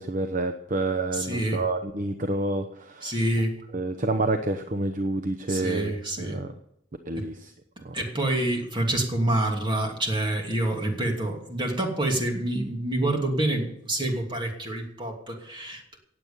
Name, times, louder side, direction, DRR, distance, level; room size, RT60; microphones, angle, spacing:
voice 1, 0.0-3.2 3.7-6.5 7.1-7.5 7.8-8.0, right 2 dB, 45° right, 8 dB, 0.8 m, -28 dB
voice 2, 1.1-1.6 3.0-3.6 5.5-6.4 7.1-7.3 7.9-16.0, right 1 dB, 25° right, 2 dB, 2.8 m, -27 dB
17.5 x 8.2 x 7.2 m, 0.75 s
head